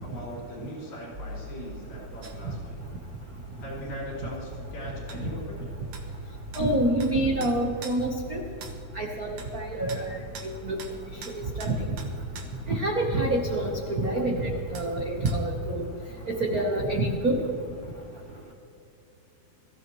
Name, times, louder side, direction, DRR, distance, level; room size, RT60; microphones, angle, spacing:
voice 1, 0.0-2.8 3.6-5.6, equal, 65° left, -5 dB, 5.0 m, -40 dB
sound 1, 1.1-14.9, right 1 dB, 25° right, 2.4 m, -42 dB
sound 2, 2.2-2.4 5.1-5.2 5.9-6.1 6.5-6.7 7.0-7.1 7.4-8.0 8.6-8.8 9.4-9.5 9.9-10.0 10.3-10.5 10.8-11.0 11.2-12.5 14.7-14.9 15.3-15.4, right 5 dB, 60° right, 2.2 m, -43 dB
voice 2, 6.6-8.4 9.0-10.2 10.7-10.8 11.6-11.7 12.7-15.8 16.3-17.4, right 1 dB, 75° right, 1 dB, 0.8 m, -27 dB
22.5 x 15.0 x 3.1 m, 2.7 s
omnidirectional pair, 3.5 m